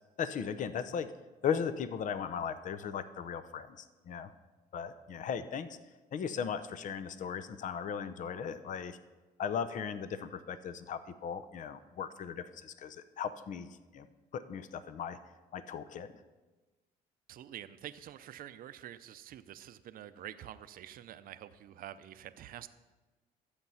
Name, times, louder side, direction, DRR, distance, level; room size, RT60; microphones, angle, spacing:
voice 1, 0.2-1.1 1.4-4.3 4.7-5.8 6.1-9.0 9.4-14.1 14.3-15.2 15.5-16.1, left 7 dB, 50° left, 13 dB, 0.7 m, -37 dB
voice 2, 17.3-22.7, right 11 dB, 60° right, 12 dB, 0.6 m, -47 dB
12.0 x 8.1 x 5.7 m, 1.2 s
cardioid pair, 110°, 17 cm